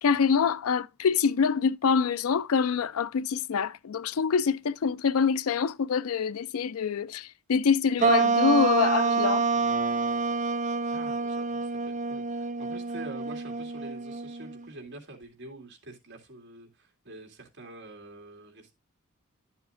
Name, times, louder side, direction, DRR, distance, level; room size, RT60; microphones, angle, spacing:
voice 1, 0.0-9.5, left 6 dB, 90° left, 0.4 m, -25 dB
sound 1, 8.0-14.7, right 4 dB, 35° right, 0.5 m, -27 dB
voice 2, 10.9-18.7, right 2 dB, 55° right, 2.2 m, -46 dB
11.0 x 7.1 x 2.5 m
head